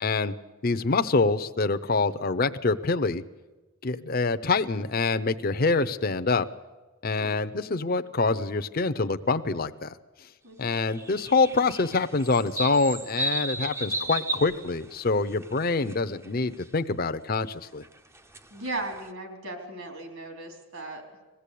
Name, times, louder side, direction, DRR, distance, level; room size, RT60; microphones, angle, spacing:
voice 1, 0.0-0.3 0.6-3.2 3.8-6.5 7.0-10.0 10.6-17.8, left 3 dB, 45° left, 10 dB, 0.6 m, -25 dB
voice 2, 10.4-10.8 18.5-21.0, right 2 dB, 70° right, 4 dB, 3.7 m, -37 dB
sound 1, 10.8-16.0 16.2-16.6 17.8-19.1, right 2 dB, 10° right, 0.6 m, -34 dB
21.0 x 15.5 x 8.4 m, 1.2 s
head